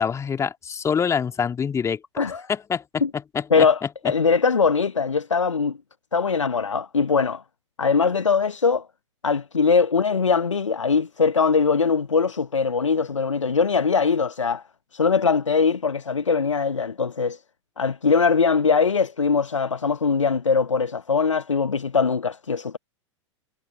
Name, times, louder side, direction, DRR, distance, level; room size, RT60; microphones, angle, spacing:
voice 1, 0.0-2.0 2.5-3.7, left 6 dB, 20° left, 2.3 m, -25 dB
voice 2, 3.5-5.8 6.1-7.4 7.8-8.9 9.2-14.6 14.9-17.4 17.8-22.8, left 5 dB, 80° left, 1.2 m, -21 dB
figure-of-eight pair, 90°, 16 cm